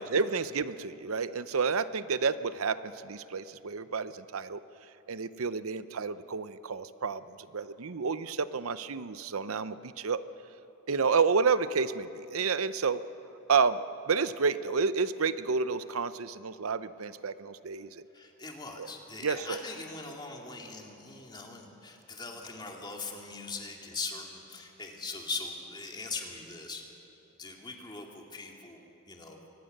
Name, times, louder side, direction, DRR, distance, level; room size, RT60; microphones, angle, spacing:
voice 1, 0.0-2.8 3.0-4.6 5.1-7.2 7.5-10.2 10.9-13.0 13.5-18.0 18.8-18.9 19.2-19.6, right 5 dB, 80° right, 13 dB, 0.7 m, -30 dB
voice 2, 18.1-26.8 27.3-29.5, left 3 dB, 20° left, 1 dB, 2.4 m, -41 dB
24.5 x 20.0 x 6.7 m, 3.0 s
head